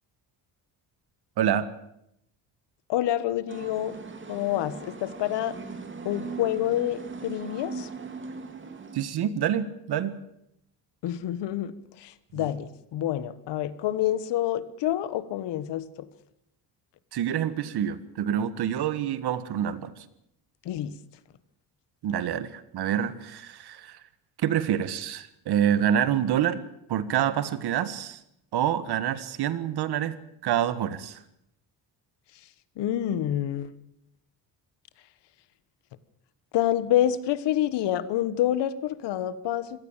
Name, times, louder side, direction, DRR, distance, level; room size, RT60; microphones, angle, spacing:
voice 1, 2.9-3.9 4.3-5.6 6.0-7.9 11.0-15.9 20.6-20.9 32.8-33.7 36.5-39.8, left 12 dB, 85° left, 15 dB, 1.5 m, -27 dB
sound 1, 3.5-9.0, right 4 dB, 30° right, 2.5 m, -39 dB
voice 2, 8.9-10.1 12.3-12.5 17.1-19.9 22.0-24.0 24.4-26.6 26.9-28.2 28.5-31.2, right 10 dB, 70° right, 14 dB, 1.8 m, -27 dB
26.0 x 17.5 x 7.5 m, 0.79 s
cardioid pair, 140°, 41 cm